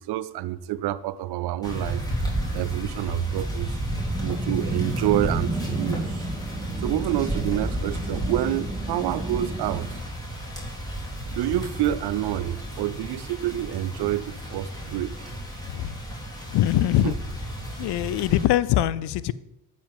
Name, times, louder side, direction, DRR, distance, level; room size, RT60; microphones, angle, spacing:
voice 1, 0.0-2.0 2.5-3.8 4.2-6.3 6.8-9.9 11.3-15.3 17.0-17.1, right 14 dB, 55° right, 0.6 m, -28 dB
sound 1, 1.6-18.4, right 1 dB, 10° left, 3.7 m, -33 dB
sound 2, 3.9-10.0, right 2 dB, 10° right, 2.1 m, -32 dB
voice 2, 15.6-16.0 16.5-17.1 17.8-19.3, left 13 dB, 55° left, 0.6 m, -22 dB
15.0 x 5.2 x 3.5 m
hypercardioid pair, 45°, 47 cm